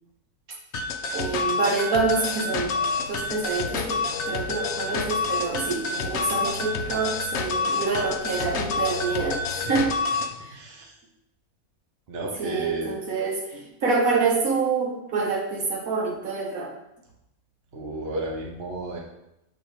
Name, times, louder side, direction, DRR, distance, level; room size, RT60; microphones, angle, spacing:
sound 1, 0.7-10.3, left 4 dB, 60° left, 0.8 m, -28 dB
voice 1, 1.1-2.8 3.1-4.0 4.2-9.9 10.4-10.6 12.4-16.7, right 4 dB, 70° right, -2 dB, 1.6 m, -27 dB
sound 2, 2.1-10.0, left 5 dB, 85° left, 1.2 m, -40 dB
voice 2, 10.5-10.9 12.1-12.9 17.7-19.0, right 2 dB, 45° right, -2 dB, 1.1 m, -32 dB
7.4 x 3.0 x 4.9 m, 0.87 s
omnidirectional pair, 1.5 m